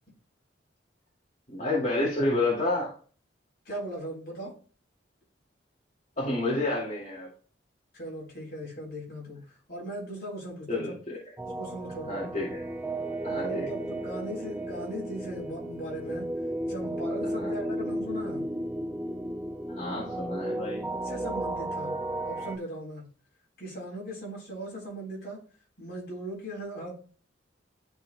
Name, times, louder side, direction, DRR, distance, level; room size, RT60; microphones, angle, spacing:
voice 1, 1.5-2.9 6.2-7.3 10.7-11.2 12.1-12.6 13.2-13.7 17.4-17.5 19.7-20.8, left 2 dB, 40° left, -7 dB, 2.3 m, -29 dB
voice 2, 3.7-4.5 7.9-10.9 11.5-12.2 13.3-16.3 16.7-18.4 21.0-21.9 22.2-23.1 23.6-25.4 25.8-26.9, equal, 55° left, -4 dB, 3.8 m, -38 dB
sound 1, 11.4-22.6, right 1 dB, 10° right, 0.4 m, -34 dB
12.5 x 4.6 x 2.2 m, 0.40 s
head